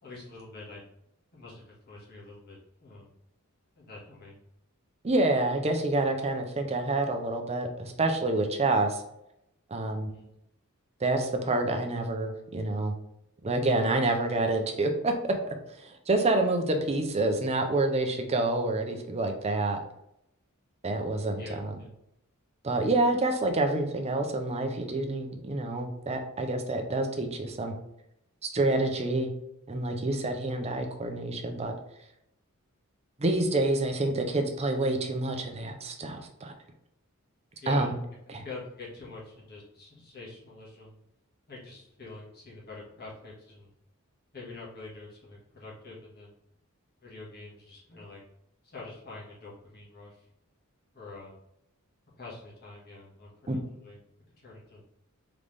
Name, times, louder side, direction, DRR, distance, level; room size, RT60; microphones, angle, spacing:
voice 1, 0.0-0.8 1.3-3.1 3.8-4.4 10.1-10.3 21.4-21.9 37.6-37.9 38.3-41.0 41.5-43.7 44.3-46.3 47.0-48.2 48.6-50.1 50.9-51.4 52.2-54.0 54.4-54.8, left 3 dB, 45° left, -5 dB, 1.5 m, -45 dB
voice 2, 5.0-9.0 9.7-10.1 11.0-12.9 13.4-15.1 15.4-19.8 20.8-21.7 22.6-27.7 28.4-29.3 29.7-31.7 33.2-36.5 37.7-37.9 38.3-38.4 53.5-53.6, right 2 dB, 30° right, 4 dB, 0.6 m, -28 dB
3.9 x 3.5 x 3.3 m, 0.81 s
head